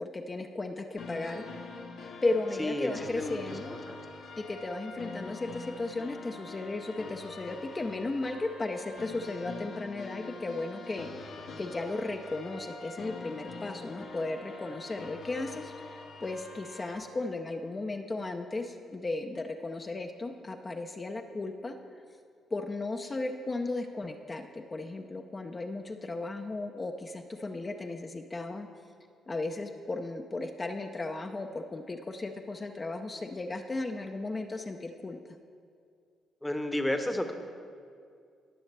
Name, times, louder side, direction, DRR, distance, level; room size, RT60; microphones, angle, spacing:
voice 1, 0.0-1.6 2.2-3.8 4.4-21.7 22.5-28.7 29.3-35.2, left 2 dB, 25° left, 4 dB, 0.6 m, -35 dB
sound 1, 1.0-17.0, left 3 dB, 70° left, 1.2 m, -44 dB
voice 2, 2.6-3.4 3.7-4.0 36.4-37.3, left 1 dB, 10° left, 6 dB, 0.9 m, -32 dB
18.5 x 6.3 x 3.3 m, 2.3 s
cardioid pair, 90°, 0 cm